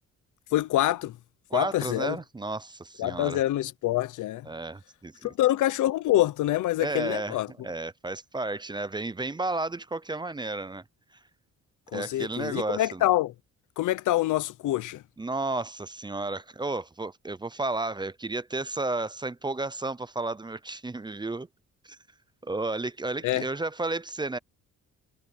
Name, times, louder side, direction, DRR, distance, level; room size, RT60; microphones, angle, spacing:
voice 1, 0.5-1.2 1.5-2.2 3.0-4.5 5.2-7.5 11.9-13.3 13.8-15.0 23.2-23.5, left 15 dB, 80° left, 1.0 m, -26 dB
voice 2, 1.5-3.4 4.5-5.3 6.8-10.8 11.9-13.1 15.2-21.5 21.8-22.0 22.4-24.4, right 2 dB, 15° right, 0.7 m, -32 dB
cardioid pair, 90°, 30 cm